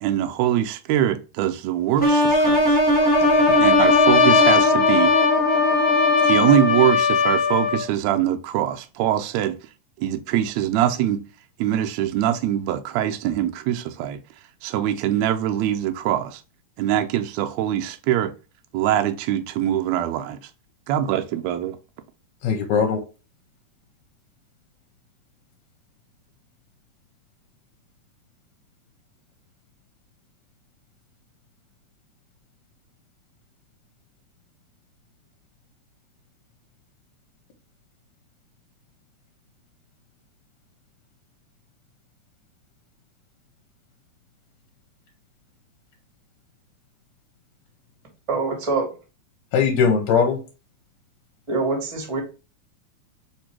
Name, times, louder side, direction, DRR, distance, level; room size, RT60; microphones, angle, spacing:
voice 1, 0.0-2.6 3.6-5.1 6.2-9.6 10.0-11.2 11.6-14.2 14.6-16.4 16.8-18.3 18.7-20.4 20.9-21.8, right 11 dB, 80° right, 1.7 m, -23 dB
sound 1, 2.0-6.9, equal, 5° left, 0.8 m, -20 dB
Trumpet, 3.0-7.9, left 6 dB, 55° left, 1.8 m, -19 dB
voice 2, 3.3-3.9 22.4-23.0 49.5-50.4, left 6 dB, 75° left, 1.9 m, -21 dB
voice 3, 48.3-48.9 51.5-52.2, right 3 dB, 30° right, 0.5 m, -24 dB
4.6 x 2.6 x 4.4 m
omnidirectional pair, 3.5 m